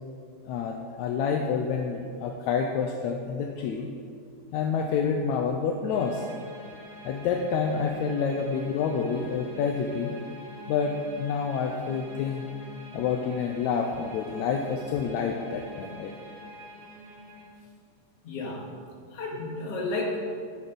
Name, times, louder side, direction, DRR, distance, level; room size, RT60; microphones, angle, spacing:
voice 1, 0.5-3.9 4.5-6.2 7.1-10.1 10.7-12.4 12.9-16.1, left 6 dB, 75° left, 2 dB, 1.9 m, -28 dB
sound 1, 5.9-17.5, equal, 25° left, 2.6 m, -46 dB
voice 2, 18.2-18.6 19.1-20.2, left 2 dB, 55° left, -2 dB, 2.6 m, -31 dB
10.5 x 10.0 x 5.3 m, 2.3 s
omnidirectional pair, 3.6 m